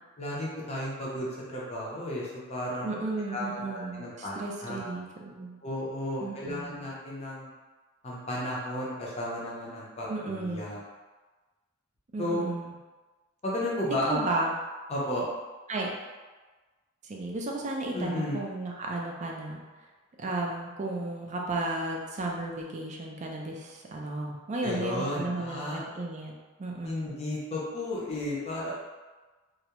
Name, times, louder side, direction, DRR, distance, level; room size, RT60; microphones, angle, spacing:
voice 1, 0.2-2.9 3.3-4.9 5.6-7.5 8.0-10.8 12.2-12.4 13.4-14.2 14.9-15.3 17.9-18.4 24.6-25.8 26.8-28.7, left 1 dB, 30° left, -5 dB, 0.5 m, -33 dB
voice 2, 2.8-5.6 6.2-6.9 10.1-10.7 12.1-12.7 14.1-14.5 15.7-15.9 17.0-19.6 20.2-26.3 26.6-27.1, right 2 dB, 35° right, -1 dB, 0.4 m, -34 dB
2.3 x 2.1 x 2.8 m, 1.3 s
head